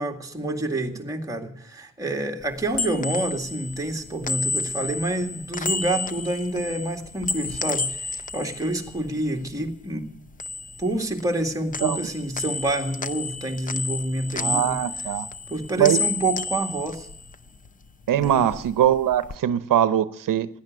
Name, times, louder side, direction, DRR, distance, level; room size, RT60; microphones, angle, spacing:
voice 1, 0.0-10.1 10.8-14.8 15.5-17.1 18.1-18.4, right 2 dB, 10° right, 0 dB, 2.1 m, -28 dB
sound 1, 2.4-9.7 10.0-11.4 11.7-17.7 18.0-19.4, left 3 dB, 25° left, 0.6 m, -31 dB
voice 2, 14.4-15.3 15.8-16.0 18.1-20.5, right 11 dB, 85° right, 14 dB, 0.8 m, -21 dB
17.0 x 10.5 x 7.8 m, 0.70 s
wide cardioid pair, 165°, 32 cm